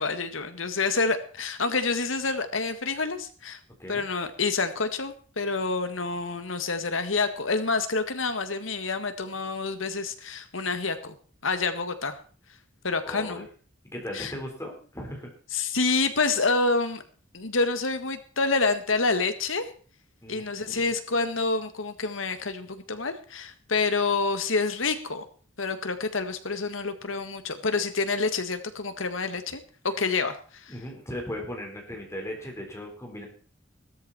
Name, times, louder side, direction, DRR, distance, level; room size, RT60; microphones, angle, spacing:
voice 1, 0.0-3.6 3.9-11.1 11.4-12.2 12.8-13.5 14.1-14.3 15.5-17.0 17.3-19.7 20.3-25.2 25.6-30.7, left 3 dB, 85° left, 9 dB, 1.8 m, -28 dB
voice 2, 13.0-13.4 13.8-15.6 20.2-20.9 30.7-33.3, left 1 dB, 15° left, 1 dB, 4.5 m, -38 dB
16.5 x 13.0 x 4.4 m, 0.41 s
head